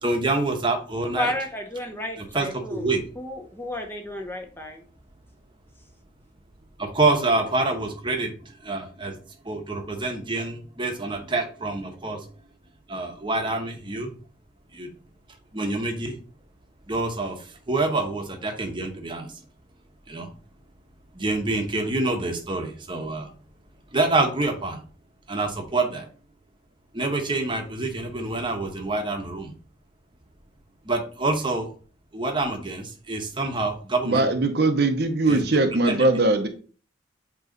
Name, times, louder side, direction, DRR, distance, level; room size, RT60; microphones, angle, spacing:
voice 1, 0.0-1.3 2.2-3.0 6.8-9.2 9.4-12.3 12.9-14.1 14.7-14.9 15.5-16.2 16.9-19.3 20.1-20.3 21.1-23.3 23.9-24.8 25.3-26.1 26.9-29.5 30.8-31.7 32.1-34.3 35.3-35.5 35.8-36.0, right 2 dB, 25° right, 4 dB, 0.9 m, -27 dB
voice 2, 1.2-4.8, left 1 dB, 10° left, 3 dB, 0.8 m, -32 dB
voice 3, 34.1-36.5, right 2 dB, 55° right, 7 dB, 0.7 m, -21 dB
8.1 x 3.0 x 3.8 m, 0.40 s
head